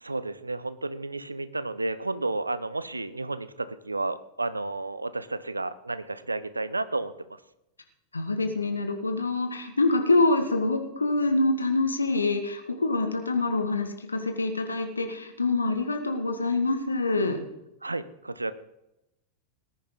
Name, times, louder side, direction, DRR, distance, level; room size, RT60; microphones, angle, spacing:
voice 1, 0.0-7.4 17.8-18.5, right 2 dB, 80° right, 16 dB, 0.7 m, -32 dB
voice 2, 8.1-17.4, left 2 dB, 80° left, 5 dB, 1.8 m, -25 dB
19.0 x 10.0 x 4.0 m, 0.90 s
figure-of-eight pair, 90°, 0 cm